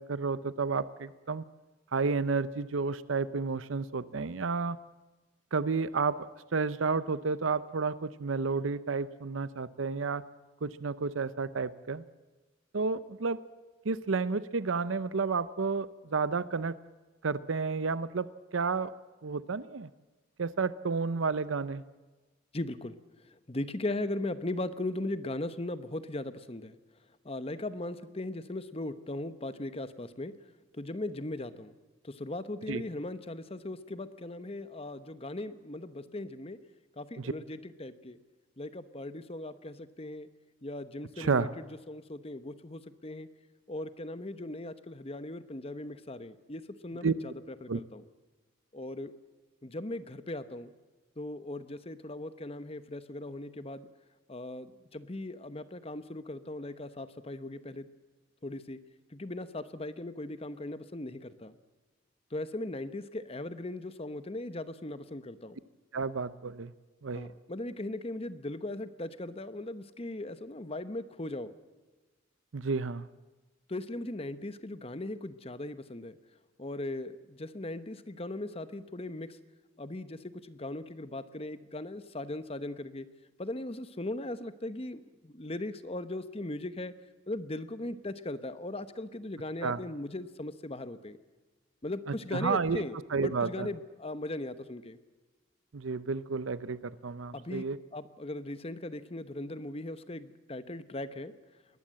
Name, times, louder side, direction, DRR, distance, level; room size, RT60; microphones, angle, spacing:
voice 1, 0.0-1.4 1.9-4.8 5.5-6.2 6.5-10.2 10.6-12.0 12.7-13.4 13.9-16.7 17.2-18.9 19.2-19.9 20.4-21.8 32.7-32.8 37.2-37.3 41.2-41.5 47.0-47.1 47.7-47.8 65.9-66.7 67.0-67.3 72.5-73.0 89.6-89.8 92.3-92.8 93.1-93.7 95.7-97.8, right 4 dB, 85° right, 16 dB, 0.7 m, -31 dB
voice 2, 22.5-23.0 23.3-26.8 27.2-30.3 30.7-31.7 32.0-36.6 37.0-38.2 38.6-40.3 40.6-43.3 43.7-47.3 47.6-48.0 48.7-49.1 49.6-50.7 51.2-53.9 54.3-57.9 58.4-58.8 59.1-61.5 62.3-65.6 67.1-71.5 73.7-76.2 76.6-79.4 79.8-83.1 83.4-86.9 87.3-91.2 91.8-93.0 93.2-95.0 97.3-97.6 97.9-101.3, left 1 dB, 30° left, 12 dB, 1.0 m, -38 dB
22.0 x 19.0 x 7.6 m, 1.2 s
head